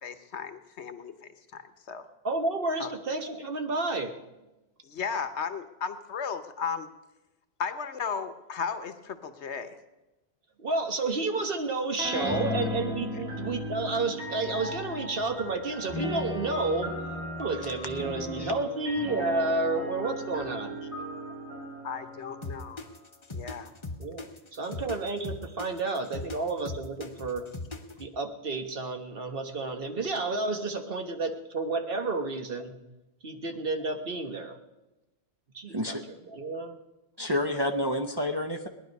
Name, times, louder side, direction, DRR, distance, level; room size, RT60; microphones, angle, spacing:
voice 1, 0.0-1.6 1.9-2.1 2.8-2.9 4.8-6.9 7.6-9.8 21.8-22.8 23.3-23.7, left 6 dB, 75° left, 10 dB, 1.2 m, -35 dB
voice 2, 2.2-4.1 10.6-16.9 17.4-20.8 24.0-27.5 28.0-32.7 33.2-34.6 35.5-36.8, right 3 dB, 55° right, 5 dB, 1.3 m, -31 dB
sound 1, 12.0-15.4 15.9-22.7, left 2 dB, 5° right, 2.1 m, -37 dB
sound 2, 13.3-23.1, right 2 dB, 80° right, 5.1 m, -41 dB
sound 3, 22.4-28.1, left 3 dB, 25° left, 0.9 m, -39 dB
voice 3, 37.2-38.7, left 1 dB, 25° right, 4 dB, 0.7 m, -29 dB
18.5 x 11.0 x 5.3 m, 1.0 s
omnidirectional pair, 1.2 m